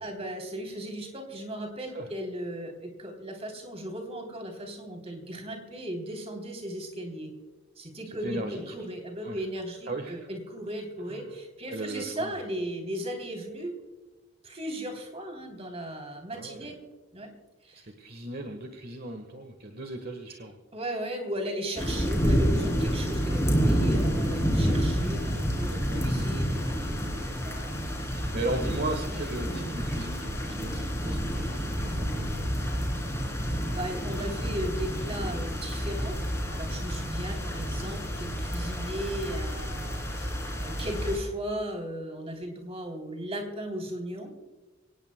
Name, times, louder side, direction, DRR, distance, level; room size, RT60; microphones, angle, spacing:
voice 1, 0.0-7.3 7.8-13.8 14.4-16.8 17.1-17.3 17.6-17.8 20.7-28.3 29.1-29.2 33.7-36.2 36.5-40.3 40.6-44.3, right 1 dB, 30° right, 3 dB, 3.3 m, -36 dB
voice 2, 8.2-8.7 9.2-9.4 9.9-10.2 11.1-11.3 11.7-12.4 16.3-16.7 17.7-20.6 25.5-26.0 28.1-32.8, right 2 dB, 45° right, 5 dB, 1.4 m, -37 dB
sound 1, 21.8-41.2, equal, 15° left, 3.0 m, -29 dB
25.0 x 18.5 x 2.2 m, 1.2 s
head